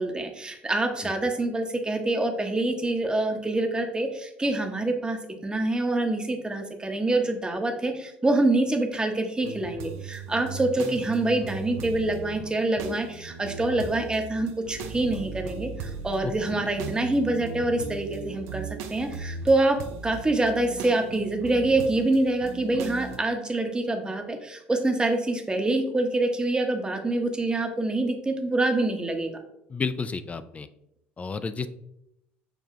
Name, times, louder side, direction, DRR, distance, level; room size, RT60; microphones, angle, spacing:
voice 1, 0.0-29.3, right 2 dB, 15° right, 4 dB, 0.8 m, -26 dB
sound 1, 9.4-23.2, right 5 dB, 60° right, 0.5 m, -38 dB
voice 2, 16.2-16.7 29.7-30.7 31.2-31.7, left 5 dB, 25° left, 12 dB, 0.3 m, -32 dB
6.7 x 2.2 x 2.8 m, 0.80 s
hypercardioid pair, 65°, 6 cm